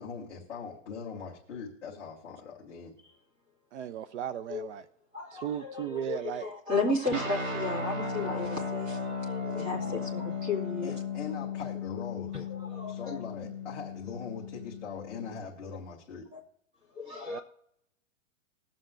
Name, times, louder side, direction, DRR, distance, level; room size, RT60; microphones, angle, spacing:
voice 1, 0.0-2.9 9.9-10.1 10.8-12.3 12.9-16.2, left 5 dB, 5° left, 0.4 m, -41 dB
voice 2, 3.7-4.9 5.3-6.5 7.1-7.2 17.3-17.4, right 10 dB, 65° right, 0.5 m, -36 dB
voice 3, 5.1-10.9 12.3-13.2 16.3-16.4 16.9-17.4, left 3 dB, 20° right, 2.2 m, -34 dB
sound 1, 7.1-15.4, left 4 dB, 85° right, 2.8 m, -36 dB
21.0 x 7.4 x 2.6 m
supercardioid pair, 175°, 38 cm